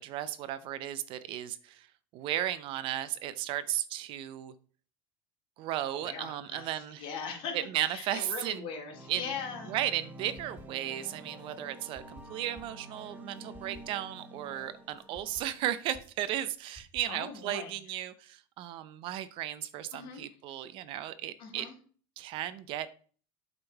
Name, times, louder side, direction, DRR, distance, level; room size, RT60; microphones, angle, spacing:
voice 1, 0.0-1.9 2.1-4.5 5.6-7.0 7.5-8.6 9.1-9.3 9.7-21.7 22.2-22.9, right 12 dB, 55° right, 14 dB, 0.6 m, -35 dB
voice 2, 6.0-7.6 7.9-9.7 17.1-17.7 19.9-20.3 21.4-21.7, left 6 dB, 55° left, 1 dB, 2.2 m, -40 dB
sound 1, 8.9-15.8, right 1 dB, 15° right, 1.0 m, -49 dB
sound 2, 10.4-11.0 11.4-14.2 14.6-17.4, left 3 dB, 30° left, 3.2 m, -56 dB
7.8 x 3.7 x 4.5 m, 0.42 s
supercardioid pair, 125°, 10 cm